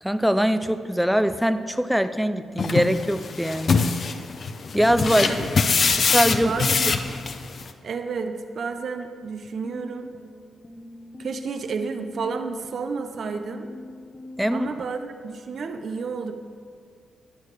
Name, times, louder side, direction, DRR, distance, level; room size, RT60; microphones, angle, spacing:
voice 1, 0.0-3.8 4.7-5.4 6.1-6.5 14.4-14.7, equal, ahead, 10 dB, 0.4 m, -22 dB
sound 1, 2.6-7.7, left 5 dB, 50° left, 0.5 m, -23 dB
sound 2, 4.8-7.9 9.6-14.5, left 2 dB, 20° left, 0.8 m, -40 dB
voice 2, 5.2-5.5 5.8-6.0 6.4-6.9 7.8-10.1 11.2-13.7 14.5-16.3, right 5 dB, 60° right, 7 dB, 0.6 m, -31 dB
10.0 x 6.5 x 4.7 m, 2.1 s
cardioid pair, 85°, 0 cm